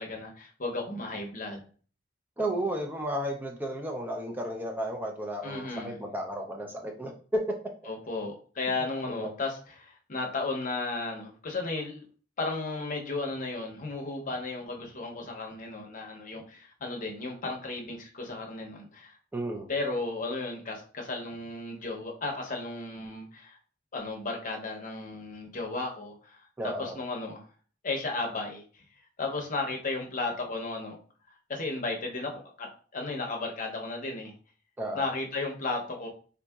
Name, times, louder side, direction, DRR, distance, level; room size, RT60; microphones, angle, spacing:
voice 1, 0.0-1.6 5.4-6.0 7.9-12.0 12.4-19.1 19.7-23.6 23.9-26.5 26.8-27.4 27.8-28.6 29.2-31.0 31.5-32.7 32.9-34.3 34.9-36.1, left 3 dB, 45° left, 1 dB, 0.7 m, -34 dB
voice 2, 2.4-7.6 7.8-7.9 9.1-9.3 19.3-19.7 26.6-27.0 34.8-35.1, right 1 dB, 10° right, 2 dB, 0.4 m, -33 dB
3.8 x 2.7 x 2.2 m, 0.41 s
head